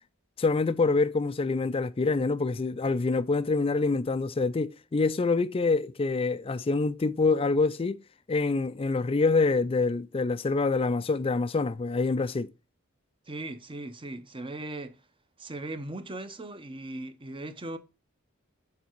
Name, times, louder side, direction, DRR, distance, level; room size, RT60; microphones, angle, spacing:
voice 1, 0.4-8.0 8.3-12.5, left 3 dB, 25° left, 0.4 m, -26 dB
voice 2, 13.3-15.0 15.4-17.8, right 2 dB, 25° right, 0.8 m, -38 dB
7.0 x 4.1 x 4.5 m
head